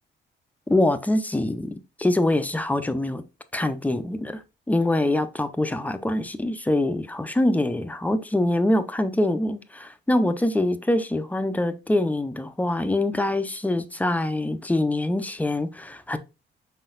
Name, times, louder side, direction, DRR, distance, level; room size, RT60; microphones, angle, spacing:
voice 1, 0.7-3.2 3.5-4.4 4.7-16.2, left 1 dB, 10° left, 0.6 m, -24 dB
5.4 x 3.9 x 2.5 m
cardioid pair, 90°, 20 cm